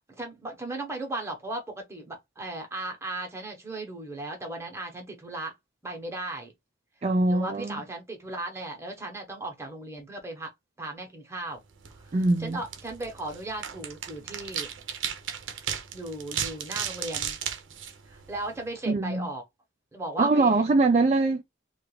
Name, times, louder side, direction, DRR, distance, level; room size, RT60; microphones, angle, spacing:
voice 1, 0.2-5.5 5.8-6.5 7.3-10.5 10.8-11.6 12.4-14.7 15.9-17.4 18.1-19.4 19.9-20.6, right 2 dB, 15° right, 0.9 m, -36 dB
voice 2, 7.0-7.8 12.1-12.6 18.9-19.3 20.2-21.4, right 3 dB, 35° right, 0.3 m, -23 dB
sound 1, 11.7-18.7, right 8 dB, 80° right, 0.6 m, -36 dB
3.2 x 2.3 x 3.1 m
head